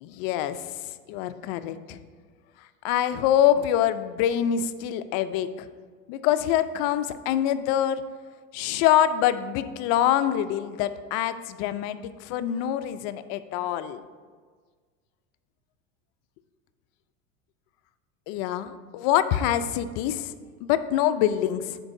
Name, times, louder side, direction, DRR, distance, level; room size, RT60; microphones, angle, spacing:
voice 1, 0.0-0.6 1.1-2.0 2.8-5.7 6.1-8.0 8.5-14.0 18.3-20.3 20.6-21.8, left 11 dB, 55° left, 12 dB, 0.6 m, -25 dB
12.5 x 4.6 x 2.6 m, 1.5 s
hypercardioid pair, 100°, 40 cm